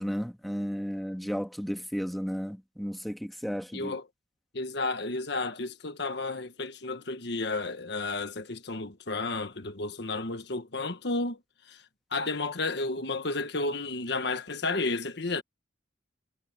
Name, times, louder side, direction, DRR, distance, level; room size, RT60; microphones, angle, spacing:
voice 1, 0.0-3.9, equal, ahead, 2.3 m, -33 dB
voice 2, 3.7-4.0 4.5-11.4 11.7-11.8 12.1-15.4, left 3 dB, 65° left, 1.5 m, -32 dB
head